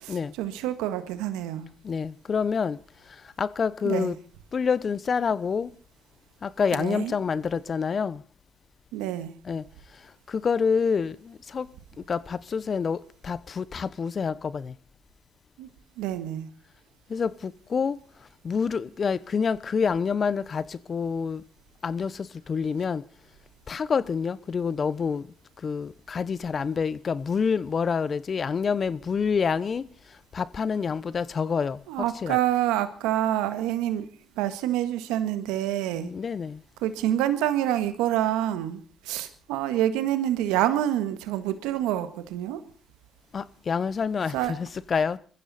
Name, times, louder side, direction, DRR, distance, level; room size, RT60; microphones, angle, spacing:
voice 1, 0.0-1.7 3.8-4.1 6.7-7.1 8.9-9.3 15.6-15.7 16.0-16.5 31.5-31.6 31.9-34.1 34.3-36.1 36.8-42.6 44.3-44.5, right 12 dB, 90° right, 1.6 m, -27 dB
voice 2, 1.8-2.8 3.1-4.2 4.5-5.7 6.4-8.2 9.5-9.6 10.3-11.7 12.1-14.7 17.1-18.0 18.4-21.4 21.8-23.0 23.7-25.3 25.6-29.9 30.3-32.4 35.9-36.6 43.3-45.2, left 6 dB, 50° left, 1.0 m, -27 dB
22.0 x 15.0 x 4.3 m
supercardioid pair, 55°, 0 cm